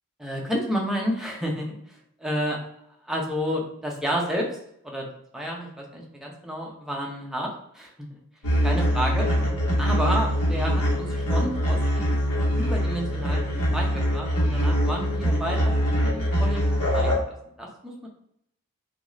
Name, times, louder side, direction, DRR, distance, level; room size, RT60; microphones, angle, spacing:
voice 1, 0.2-2.6 3.0-4.5 4.8-5.1 5.3-8.2 8.6-9.3 9.8-12.1 12.5-17.2 17.6-18.1, equal, ahead, -2 dB, 0.6 m, -30 dB
sound 1, 8.4-17.2, equal, 80° left, 1.0 m, -23 dB
2.5 x 2.3 x 3.1 m, 0.72 s
head